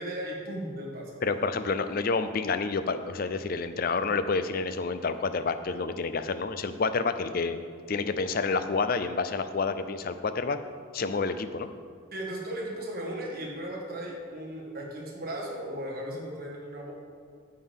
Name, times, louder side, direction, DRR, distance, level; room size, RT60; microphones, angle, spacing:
voice 1, 0.0-1.2 12.1-16.9, right 1 dB, 45° right, -2 dB, 1.7 m, -36 dB
voice 2, 1.2-7.6 7.9-10.6 10.9-11.7, left 4 dB, 45° left, 10 dB, 0.4 m, -29 dB
9.5 x 7.7 x 3.6 m, 2.2 s
head